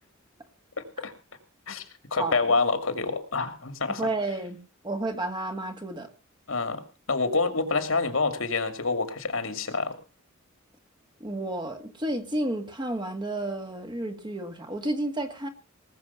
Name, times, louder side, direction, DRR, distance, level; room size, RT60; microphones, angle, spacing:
voice 1, 0.8-1.1 1.7-1.8 2.1-4.0 6.5-6.8 7.1-10.0, left 3 dB, 75° left, 8 dB, 2.3 m, -27 dB
voice 2, 3.9-4.6 4.8-6.1 11.2-15.5, right 2 dB, 20° right, 6 dB, 1.8 m, -31 dB
19.5 x 6.8 x 7.0 m, 0.35 s
head